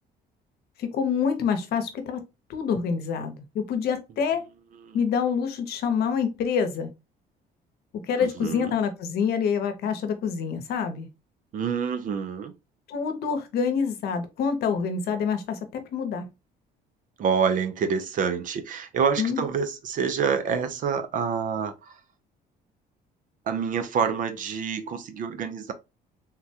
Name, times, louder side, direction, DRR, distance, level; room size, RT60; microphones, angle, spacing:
voice 1, 0.8-2.2 2.5-4.4 4.9-6.9 7.9-11.1 12.9-16.3 19.2-19.4, left 6 dB, 70° left, 0.8 m, -27 dB
voice 2, 8.2-8.7 11.5-12.5 17.2-22.0 23.5-25.7, right 6 dB, 50° right, 0.5 m, -27 dB
3.6 x 2.2 x 2.7 m
cardioid pair, 110°, 17 cm